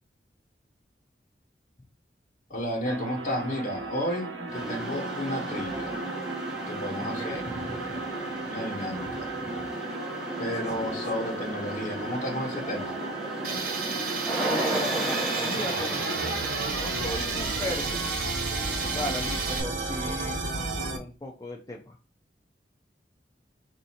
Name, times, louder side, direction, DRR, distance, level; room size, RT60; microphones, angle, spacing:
voice 1, 2.5-6.0 6.7-7.5 8.4-9.3 10.4-13.0, equal, 45° left, 1.2 m, -32 dB
sound 1, 2.8-21.0, right 2 dB, 90° right, 0.9 m, -34 dB
sound 2, 4.5-19.4, right 1 dB, 5° right, 0.9 m, -35 dB
voice 2, 7.0-8.0 9.4-9.7 14.4-18.0 18.7-22.0, left 1 dB, 20° left, 0.5 m, -37 dB
Tools, 13.4-19.6, right 5 dB, 50° right, 0.7 m, -33 dB
3.5 x 2.7 x 4.2 m
head